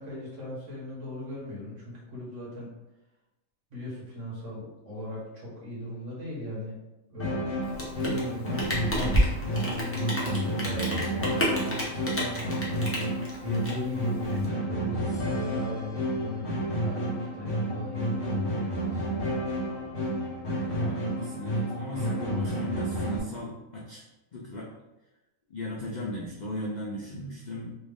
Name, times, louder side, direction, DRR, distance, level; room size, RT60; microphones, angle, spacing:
voice 1, 0.0-2.7 3.7-6.8 7.1-7.4 8.0-12.5 13.4-19.1, left 1 dB, 60° right, -5 dB, 1.4 m, -38 dB
sound 1, 7.2-23.2, equal, 50° left, 0.8 m, -30 dB
Rain, 7.6-14.4, equal, 15° left, 0.4 m, -30 dB
voice 2, 20.5-24.0 24.3-24.7 25.5-27.8, left 1 dB, 80° left, -4 dB, 0.4 m, -37 dB
3.3 x 2.3 x 3.4 m, 0.99 s
omnidirectional pair, 1.5 m